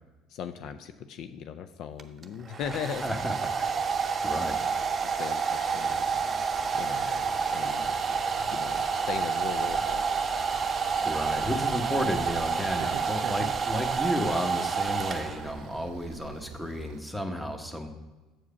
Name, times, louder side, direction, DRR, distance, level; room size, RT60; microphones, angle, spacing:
voice 1, 0.3-3.0 5.0-6.1 6.7-8.0 8.4-10.2 10.5-11.1, left 8 dB, 65° left, 9 dB, 0.4 m, -39 dB
Domestic sounds home sounds, 2.0-15.7, right 5 dB, 35° right, 0.7 m, -29 dB
sound 1, 2.6-14.0, left 1 dB, 30° left, 1.2 m, -46 dB
voice 2, 3.0-3.8 4.2-4.6 11.0-17.9, left 1 dB, 5° left, 5 dB, 1.1 m, -32 dB
sound 2, 12.0-17.0, right 10 dB, 75° right, 0.3 m, -44 dB
7.4 x 4.8 x 5.7 m, 1.2 s
supercardioid pair, 80°, 0 cm